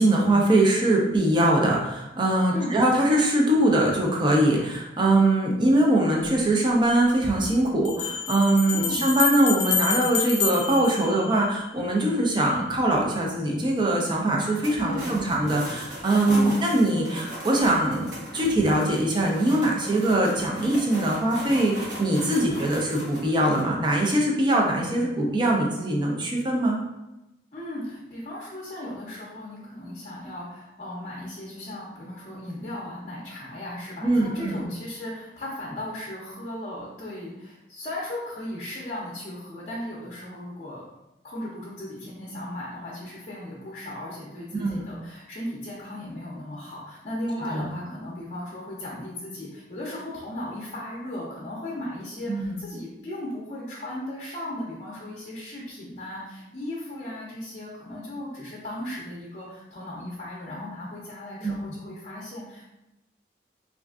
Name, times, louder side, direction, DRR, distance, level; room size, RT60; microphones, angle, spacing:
voice 1, 0.0-26.8 34.0-34.7 44.6-44.8 47.5-47.6 52.3-52.6 61.4-61.5, right 1 dB, 25° right, -1 dB, 0.5 m, -22 dB
Bell, 6.2-6.3 7.8-11.8, left 7 dB, 80° left, 0.5 m, -28 dB
voice 2, 8.7-9.1 14.8-15.3 16.3-16.6 22.5-22.6 27.5-40.9 41.2-62.6, left 1 dB, 40° left, -6 dB, 0.6 m, -36 dB
sound 1, 14.4-23.6, equal, 80° right, 1.0 m, -39 dB
3.4 x 2.5 x 2.3 m, 0.96 s
head